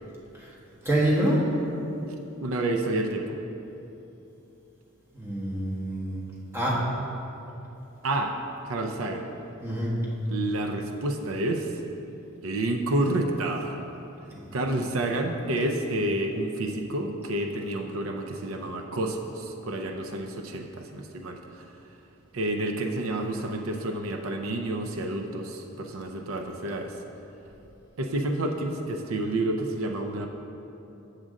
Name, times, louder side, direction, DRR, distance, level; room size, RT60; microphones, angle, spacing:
voice 1, 0.8-1.4 5.1-6.2 6.5-6.8 9.6-9.9, right 1 dB, 10° right, -6 dB, 1.4 m, -26 dB
voice 2, 2.4-3.4 8.0-8.3 8.6-9.3 10.3-11.7 12.4-13.8 14.5-21.4 22.3-26.9 28.0-30.3, right 1 dB, 80° right, 3 dB, 0.5 m, -29 dB
7.3 x 6.5 x 3.7 m, 3.0 s
head